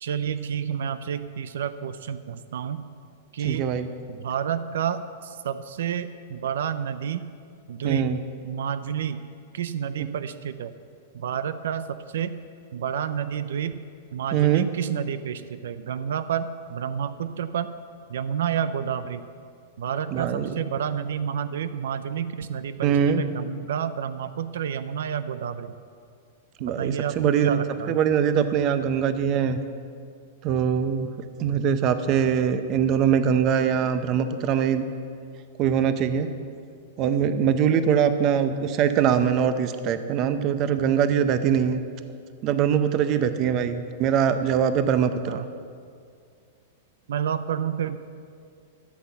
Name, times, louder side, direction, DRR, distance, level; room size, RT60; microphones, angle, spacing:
voice 1, 0.0-2.8 3.3-3.7 4.1-7.2 7.7-8.1 8.4-9.2 9.5-10.7 11.1-12.4 12.7-13.7 14.1-17.7 18.1-19.3 19.8-25.7 26.6-28.0 31.5-31.7 45.3-45.5 47.1-48.0, right 8 dB, 80° right, 13 dB, 0.5 m, -30 dB
voice 2, 3.4-3.9 7.8-8.2 14.3-14.7 20.1-20.5 22.8-23.2 26.6-27.5 27.9-29.6 30.4-31.1 31.4-34.8 35.6-36.3 37.0-41.8 42.4-45.4, right 8 dB, 30° right, 11 dB, 0.6 m, -22 dB
12.5 x 7.8 x 7.0 m, 2.3 s
supercardioid pair, 155°, 0 cm